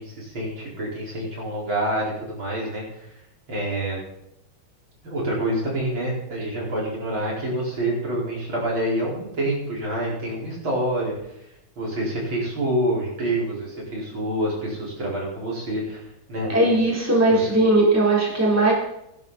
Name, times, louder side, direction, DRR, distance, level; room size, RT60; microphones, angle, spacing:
voice 1, 0.0-2.8 3.5-4.0 5.0-11.1 11.8-16.0 16.3-16.5 17.3-17.5, right 1 dB, 80° right, -4 dB, 5.6 m, -27 dB
voice 2, 16.5-18.7, right 2 dB, 5° right, -3 dB, 3.6 m, -18 dB
18.5 x 11.0 x 4.2 m, 0.83 s
omnidirectional pair, 2.2 m